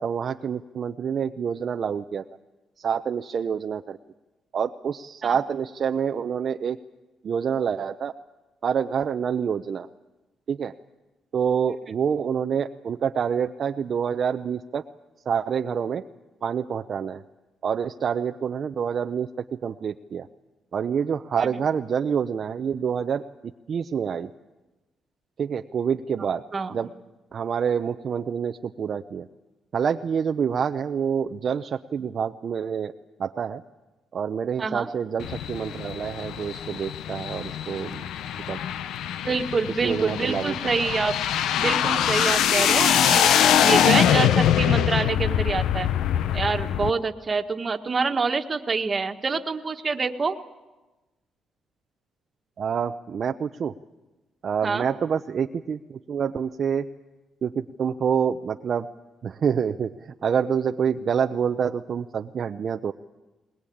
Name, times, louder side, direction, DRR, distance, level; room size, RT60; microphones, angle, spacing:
voice 1, 0.0-2.2 2.8-4.0 4.5-6.8 7.2-8.1 8.6-9.9 10.5-10.7 11.3-14.8 15.3-16.0 16.4-17.2 17.6-20.3 20.7-24.3 25.4-26.4 26.7-26.9 27.3-29.3 29.7-32.9 33.2-33.6 34.1-38.1 38.5-38.6 39.8-40.6 40.8-40.9 52.6-53.7 54.4-56.9 57.4-58.9 59.2-62.9, right 7 dB, 55° right, 6 dB, 0.7 m, -27 dB
sound 1, 35.2-46.9, left 10 dB, 80° left, 0.7 m, -23 dB
voice 2, 39.2-41.1 41.6-43.3 43.6-45.9 46.3-50.4 54.6-54.8, right 4 dB, 35° right, 6 dB, 1.6 m, -26 dB
21.0 x 20.5 x 8.7 m, 1.1 s
cardioid pair, 90°, 0 cm